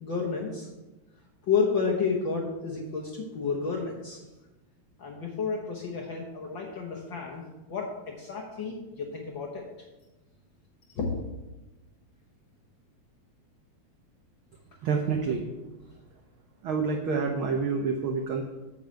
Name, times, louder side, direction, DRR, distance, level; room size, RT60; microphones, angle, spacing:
voice 1, 0.0-0.7 1.5-4.2 5.0-9.6 10.9-11.1, left 5 dB, 60° left, -1 dB, 1.3 m, -31 dB
voice 2, 14.8-15.5 16.6-18.5, right 5 dB, 80° right, 3 dB, 1.1 m, -28 dB
9.3 x 4.7 x 7.7 m, 1.1 s
omnidirectional pair, 3.4 m